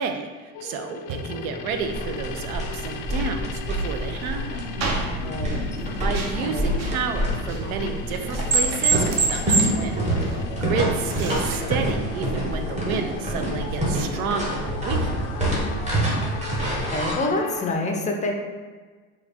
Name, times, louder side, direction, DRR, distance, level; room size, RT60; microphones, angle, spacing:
voice 1, 0.0-4.6 6.0-15.3, right 6 dB, 70° right, 6 dB, 0.6 m, -31 dB
sound 1, 0.5-17.7, left 6 dB, 75° left, 0.5 m, -37 dB
sound 2, 1.1-11.6, right 4 dB, 35° right, 0.7 m, -30 dB
sound 3, 1.7-17.1, right 1 dB, 15° right, 1.0 m, -27 dB
voice 2, 5.2-5.8 6.3-6.7 16.9-18.3, left 2 dB, 15° left, 1 dB, 0.5 m, -27 dB
3.3 x 2.4 x 4.2 m, 1.4 s
hypercardioid pair, 95°, 44 cm